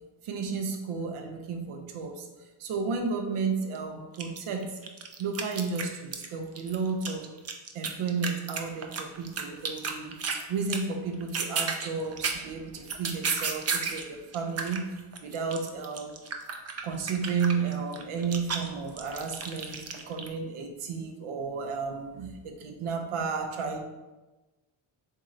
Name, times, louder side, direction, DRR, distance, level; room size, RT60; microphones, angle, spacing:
voice 1, 0.2-2.3 2.6-4.7 5.2-7.3 7.7-10.2 10.5-14.8 15.2-16.2 16.8-23.8, right 5 dB, 85° right, 4 dB, 0.6 m, -32 dB
sound 1, 3.7-3.8 4.1-6.3 6.5-10.4 10.7-10.9 11.2-14.1 14.3-20.3, right 5 dB, 35° right, 0.4 m, -33 dB
3.1 x 2.7 x 3.6 m, 1.1 s
cardioid pair, 90°, 49 cm